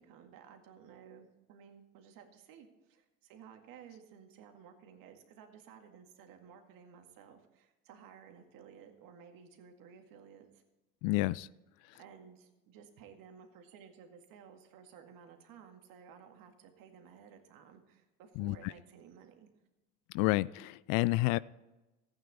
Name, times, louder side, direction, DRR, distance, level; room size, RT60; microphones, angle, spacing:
voice 1, 0.0-10.6 12.0-19.5, right 7 dB, 60° right, 5 dB, 2.0 m, -55 dB
voice 2, 11.0-11.5 18.4-18.7 20.1-21.4, left 20 dB, 60° left, 20 dB, 0.5 m, -30 dB
15.0 x 9.0 x 4.1 m, 1.1 s
hypercardioid pair, 75°, 39 cm